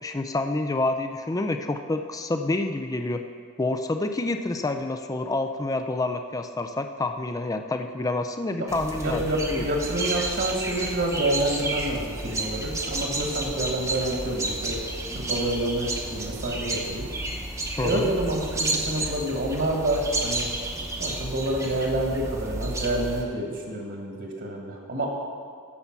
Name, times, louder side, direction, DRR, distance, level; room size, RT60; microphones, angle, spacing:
voice 1, 0.0-3.2 3.6-9.2 9.5-9.7 17.8-18.1, left 2 dB, 15° left, 7 dB, 0.3 m, -28 dB
sound 1, 8.7-23.2, right 2 dB, 15° right, 0.8 m, -31 dB
voice 2, 9.0-14.8 15.1-17.1 17.8-20.5 21.0-25.1, right 1 dB, 50° right, 0 dB, 1.6 m, -28 dB
15.0 x 5.7 x 5.9 m, 2.1 s
head